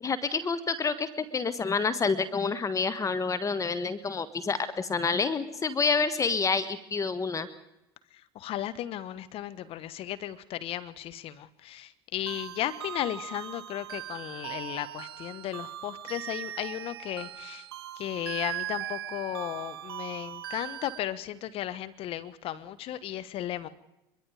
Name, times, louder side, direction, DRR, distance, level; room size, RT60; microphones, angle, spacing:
voice 1, 0.0-7.5, left 4 dB, 25° left, 15 dB, 1.5 m, -28 dB
voice 2, 8.3-17.7 18.0-23.7, left 12 dB, 45° left, 12 dB, 1.6 m, -35 dB
sound 1, 12.3-21.0, right 12 dB, 70° right, 1.0 m, -39 dB
24.0 x 22.5 x 5.2 m, 0.93 s
figure-of-eight pair, 70°, 13 cm